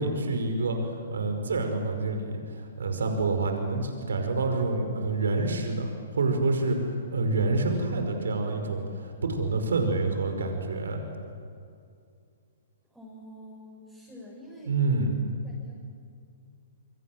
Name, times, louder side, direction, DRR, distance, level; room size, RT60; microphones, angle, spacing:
voice 1, 0.0-11.0 14.7-15.1, right 3 dB, 80° right, 5 dB, 5.4 m, -27 dB
voice 2, 12.9-14.7 15.4-15.8, equal, ahead, -7 dB, 7.5 m, -47 dB
29.0 x 24.0 x 7.9 m, 2.4 s
hypercardioid pair, 125°, 0 cm